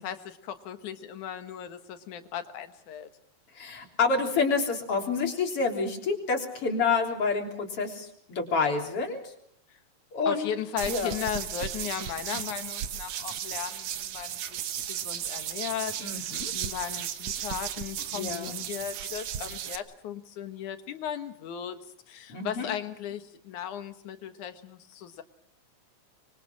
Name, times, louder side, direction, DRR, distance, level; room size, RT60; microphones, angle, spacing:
voice 1, 0.0-3.1 10.3-16.2 16.5-21.8 22.1-25.2, left 9 dB, 80° left, 9 dB, 2.9 m, -36 dB
voice 2, 3.5-9.2 10.1-10.5 10.9-11.1 16.0-16.5 18.1-18.6 22.3-22.7, left 4 dB, 45° left, 3 dB, 4.3 m, -28 dB
sound 1, 10.8-19.8, right 10 dB, 70° right, 2.4 m, -35 dB
25.0 x 24.0 x 6.0 m, 0.70 s
omnidirectional pair, 3.5 m